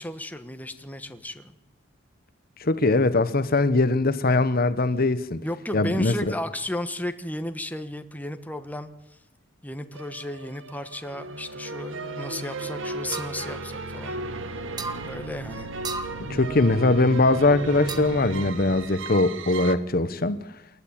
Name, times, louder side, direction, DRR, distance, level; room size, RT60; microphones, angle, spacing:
voice 1, 0.0-1.5 5.4-9.2 9.6-14.2 15.0-15.7, left 1 dB, 10° left, 8 dB, 1.2 m, -34 dB
voice 2, 2.6-5.4 5.7-6.1 16.3-20.4, left 2 dB, 45° left, 13 dB, 1.0 m, -21 dB
sound 1, 9.9-19.8, right 3 dB, 70° right, 1.5 m, -35 dB
sound 2, 13.1-13.4 14.8-15.0 15.8-16.2 17.9-18.3, right 4 dB, 20° right, 1.5 m, -33 dB
28.0 x 12.0 x 8.8 m, 0.87 s
head